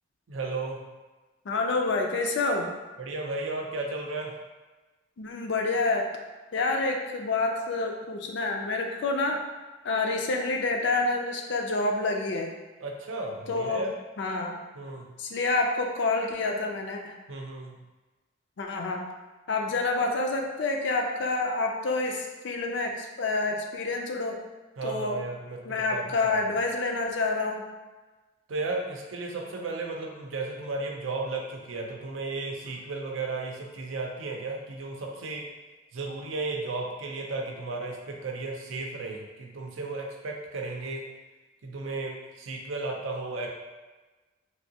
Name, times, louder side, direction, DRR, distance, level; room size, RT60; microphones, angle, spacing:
voice 1, 0.3-0.8 3.0-4.3 12.8-13.9 14.7-15.1 17.3-17.7 24.8-26.3 28.5-35.5 35.9-41.1 41.6-43.5, right 3 dB, 90° right, 0 dB, 0.6 m, -34 dB
voice 2, 1.4-2.7 5.2-6.1 6.5-9.4 9.8-12.5 13.5-13.9 14.2-14.6 15.2-17.2 18.6-19.0 19.5-24.4 24.8-25.2 25.6-27.6, left 3 dB, 60° left, 2 dB, 0.4 m, -28 dB
3.3 x 2.6 x 2.8 m, 1.2 s
head